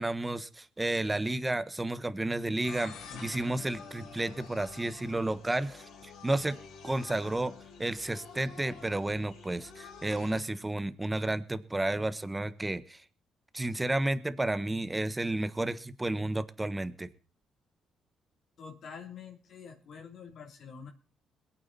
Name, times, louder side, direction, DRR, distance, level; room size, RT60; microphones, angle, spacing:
voice 1, 0.0-6.6 6.8-7.5 7.8-13.0 13.5-17.1, right 2 dB, 15° right, 13 dB, 1.4 m, -32 dB
sound 1, 2.6-10.4, left 5 dB, 80° left, 5.3 m, -48 dB
voice 2, 18.6-20.9, left 6 dB, 65° left, 1 dB, 3.5 m, -46 dB
22.0 x 8.9 x 4.2 m, 0.39 s
cardioid pair, 80°, 0 cm